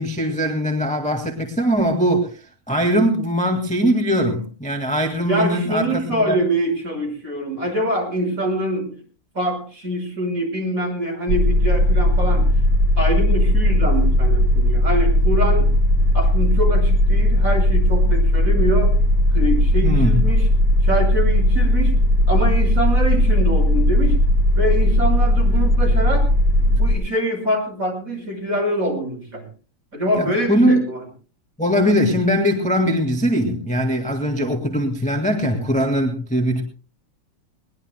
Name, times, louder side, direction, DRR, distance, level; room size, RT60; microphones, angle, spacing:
voice 1, 0.0-2.4 2.7-6.4 19.8-20.2 30.1-30.8 31.6-36.6, equal, 5° left, 3 dB, 1.7 m, -21 dB
voice 2, 5.3-9.0 9.3-12.5 13.0-15.7 16.1-18.9 19.3-20.5 20.8-21.9 22.3-24.2 24.5-26.3 26.8-29.5 29.9-31.0, right 1 dB, 35° right, 2 dB, 6.1 m, -24 dB
sound 1, 11.3-27.0, left 1 dB, 60° right, 1.5 m, -17 dB
22.0 x 20.5 x 2.2 m, 0.38 s
omnidirectional pair, 2.4 m